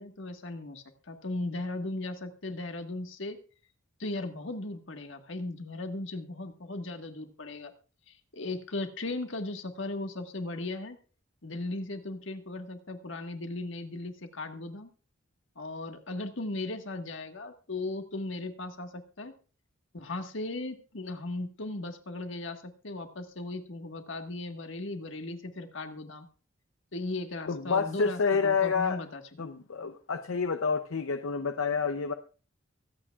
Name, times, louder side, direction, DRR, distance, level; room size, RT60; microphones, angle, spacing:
voice 1, 0.0-3.4 4.0-7.7 8.1-11.0 11.4-14.9 15.5-19.3 19.9-26.3 26.9-29.2, left 2 dB, 65° left, 6 dB, 1.5 m, -37 dB
voice 2, 27.5-29.0 29.4-32.1, left 5 dB, 85° left, 8 dB, 0.6 m, -28 dB
23.5 x 8.6 x 2.4 m, 0.36 s
head